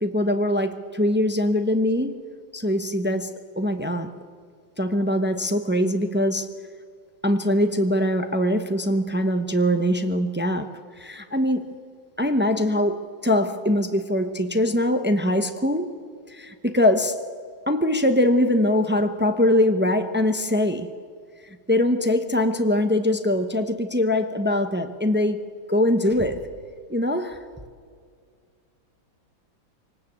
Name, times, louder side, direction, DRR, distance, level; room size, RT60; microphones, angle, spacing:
voice 1, 0.0-4.1 4.8-6.5 7.2-11.8 12.2-15.9 16.3-17.2 17.7-20.9 21.7-26.5 26.9-27.4, left 1 dB, 15° right, 0.4 m, -22 dB
25.0 x 19.0 x 8.6 m
omnidirectional pair, 2.1 m